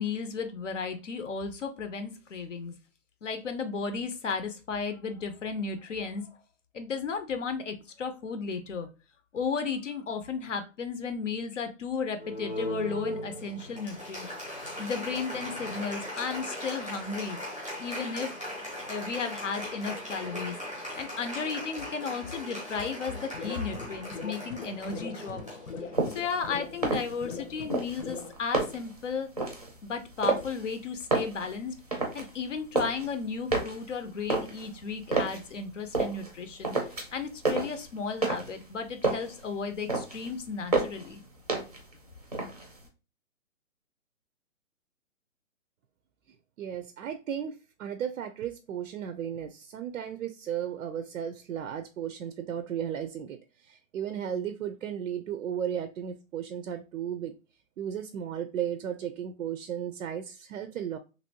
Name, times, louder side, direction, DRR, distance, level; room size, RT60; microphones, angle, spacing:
voice 1, 0.0-2.8 3.2-6.3 6.7-8.9 9.3-14.3 14.8-17.4 17.8-18.3 18.9-20.6 21.0-25.4 26.1-29.3 29.8-31.8 32.1-36.8 37.1-41.2, left 5 dB, 60° left, 0.6 m, -34 dB
Applause, 12.2-26.2, equal, 10° left, 0.7 m, -38 dB
sound 1, 23.2-28.3, left 5 dB, 90° left, 0.9 m, -41 dB
sound 2, 25.9-26.3 26.7-27.4 27.7-29.0 29.4-29.7 30.2-30.7 31.0-32.3 32.5-33.1 33.5-35.4 35.9-36.4 36.6-37.2 37.5-38.6 38.9-39.4 39.7-40.3 40.7-41.1 41.5-41.9 42.2-42.9, right 3 dB, 30° right, 0.5 m, -30 dB
voice 2, 46.6-57.3 57.8-61.0, right 9 dB, 80° right, 0.5 m, -35 dB
3.0 x 2.6 x 2.7 m
hypercardioid pair, 175°, 41 cm